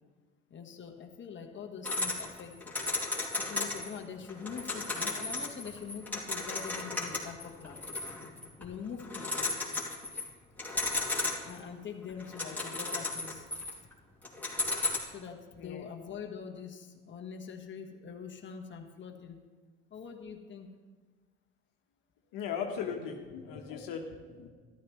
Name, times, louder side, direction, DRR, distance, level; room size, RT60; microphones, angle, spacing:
voice 1, 0.5-2.7 3.3-7.8 8.6-9.5 11.4-13.5 15.1-19.4 19.9-20.7, left 6 dB, 30° left, 2 dB, 1.4 m, -44 dB
sound 1, 1.8-4.0 4.3-8.7 9.0-10.3 10.6-11.7 12.1-13.9 14.2-15.0, left 2 dB, 5° left, 2.8 m, -34 dB
voice 2, 22.3-24.5, left 7 dB, 65° left, 2 dB, 1.4 m, -38 dB
13.0 x 12.0 x 3.2 m, 1.5 s
hypercardioid pair, 70°, 36 cm